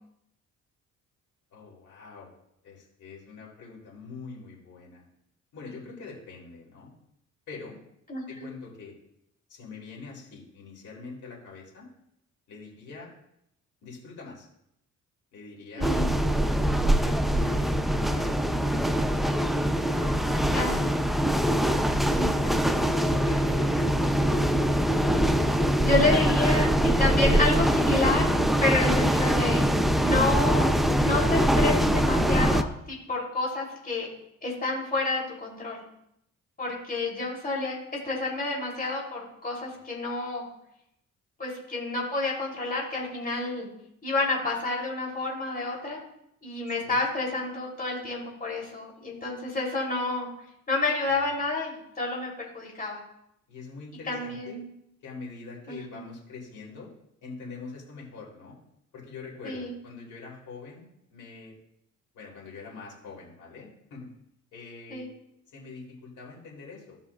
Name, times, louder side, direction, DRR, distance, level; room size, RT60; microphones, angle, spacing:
voice 1, 1.5-2.3 2.6-5.0 5.5-6.9 7.5-7.8 8.3-9.0 9.5-11.9 12.5-13.1 13.8-14.5 15.3-16.0 16.4-19.5 19.9-20.2 22.2-24.5 46.8-47.0 51.2-51.3 53.5-54.6 55.0-56.9 57.2-58.6 58.9-60.8 61.1-61.5 62.1-64.1 64.5-65.1 65.5-67.0, left 4 dB, 75° left, -3 dB, 3.4 m, -44 dB
voice 2, 8.1-8.5 15.8-16.1 20.5-20.9 22.1-22.3 25.8-28.3 28.6-29.7 30.0-30.7 31.0-34.1 34.4-35.8 36.6-37.8 38.0-40.4 41.4-43.7 44.0-46.0 46.4-50.3 50.7-53.0 54.1-54.7 55.7-56.0 59.4-59.7 64.9-65.1, left 2 dB, 30° left, -3 dB, 3.3 m, -29 dB
sound 1, 15.8-32.6, equal, ahead, 0.5 m, -23 dB
16.0 x 5.6 x 2.4 m, 0.78 s
cardioid pair, 90°, 30 cm